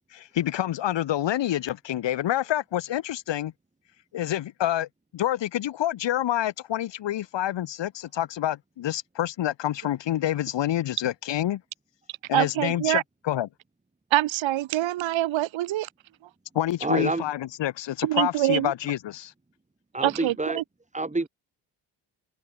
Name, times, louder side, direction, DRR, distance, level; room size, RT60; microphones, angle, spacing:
voice 1, 0.1-3.5 4.1-11.6 12.3-13.5 16.5-19.3, left 12 dB, 65° left, 1.5 m, -28 dB
voice 2, 12.3-13.0 14.1-15.9 18.0-18.7 20.0-20.6, right 15 dB, 75° right, 1.9 m, -25 dB
voice 3, 16.8-17.2 19.9-20.6 20.9-21.3, right 2 dB, 15° right, 2.1 m, -27 dB
supercardioid pair, 55°, 46 cm